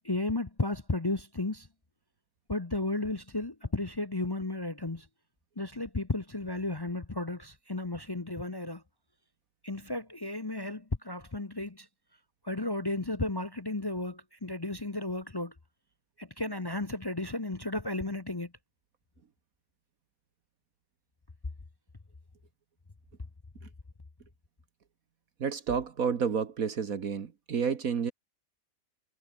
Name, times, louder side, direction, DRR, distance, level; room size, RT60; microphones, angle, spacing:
voice 1, 0.0-1.7 2.5-5.0 5.6-8.8 9.6-11.9 12.4-15.5 16.2-18.5, left 2 dB, 25° left, 0.5 m, -33 dB
voice 2, 25.4-28.1, right 6 dB, 55° right, 1.7 m, -30 dB
omnidirectional pair, 1.8 m